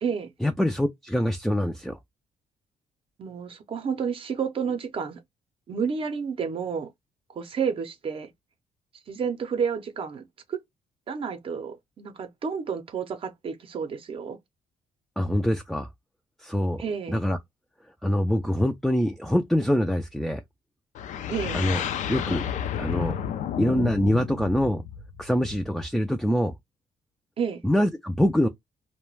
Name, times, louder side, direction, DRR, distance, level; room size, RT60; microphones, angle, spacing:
voice 1, 0.4-2.0 15.2-15.9 16.4-16.8 17.1-17.4 18.0-20.4 21.5-21.8 22.1-22.4 22.8-23.2 23.6-24.8 25.2-26.5 27.6-28.5, equal, ahead, 0.3 m, -24 dB
voice 2, 3.2-5.2 5.7-6.9 7.3-8.3 9.1-10.6 11.1-14.4 16.8-17.2 21.3-21.6 27.4-27.6, right 6 dB, 45° right, 0.6 m, -30 dB
sound 1, 20.9-25.8, left 9 dB, 75° left, 0.4 m, -31 dB
2.3 x 2.1 x 3.1 m
cardioid pair, 115°, 13 cm